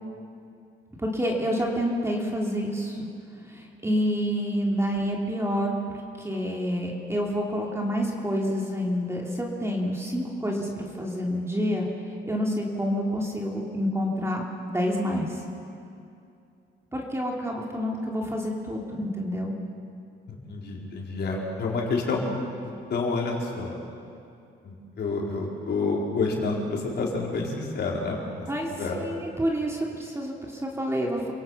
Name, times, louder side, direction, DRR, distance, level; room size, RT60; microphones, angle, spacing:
voice 1, 1.0-3.1 3.5-11.9 12.2-15.4 16.9-19.5 28.5-31.3, equal, 15° right, -1 dB, 2.8 m, -28 dB
voice 2, 20.3-22.2 22.6-23.8 24.6-28.5 28.8-29.0, left 3 dB, 55° left, -2 dB, 4.4 m, -29 dB
28.0 x 17.5 x 5.7 m, 2.5 s
cardioid pair, 90°, 20 cm